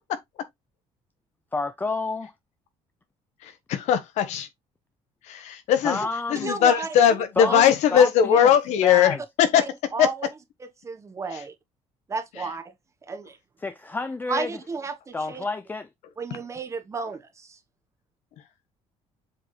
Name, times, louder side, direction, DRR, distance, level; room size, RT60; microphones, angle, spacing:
voice 1, 1.5-2.3 5.8-6.5 7.4-8.5 8.8-9.2 13.6-14.6 15.1-15.9, left 3 dB, 15° left, 0.4 m, -29 dB
voice 2, 3.4-4.5 5.2-6.0 6.3-9.7 11.3-11.4 16.3-16.4, left 9 dB, 75° left, 1.3 m, -20 dB
voice 3, 6.4-6.9 7.5-7.6 8.3-8.4 9.6-9.7 9.9-10.2 10.8-11.5 12.1-12.6 13.1-13.4 14.3-15.4 16.2-17.6, right 4 dB, 25° right, 1.2 m, -32 dB
7.6 x 4.0 x 3.2 m
cardioid pair, 130°, 12 cm